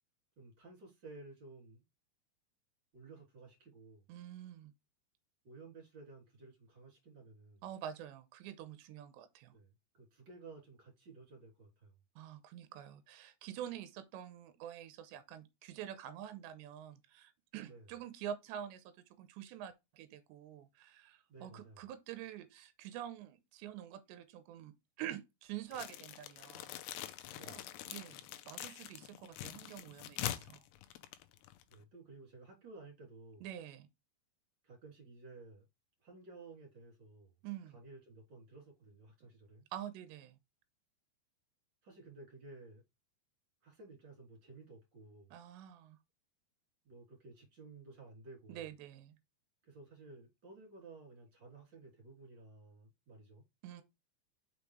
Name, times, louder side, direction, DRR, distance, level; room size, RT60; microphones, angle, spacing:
voice 1, 0.4-1.8 2.9-4.0 5.4-7.6 9.5-11.9 17.6-17.8 21.3-21.8 27.3-27.7 31.7-33.5 34.6-35.7 36.0-37.4 37.7-39.6 41.8-42.8 43.6-45.3 46.8-48.7 49.6-53.4, right 3 dB, 30° right, 3.4 m, -55 dB
voice 2, 4.1-4.7 7.6-9.6 12.2-18.9 19.2-26.7 27.4-30.7 33.4-33.9 37.4-37.8 39.7-40.4 45.3-46.0 48.5-49.2 53.6-53.8, right 10 dB, 90° right, 2.9 m, -47 dB
sound 1, 25.7-31.8, left 13 dB, 80° left, 2.7 m, -44 dB
6.3 x 5.3 x 3.3 m
omnidirectional pair, 5.1 m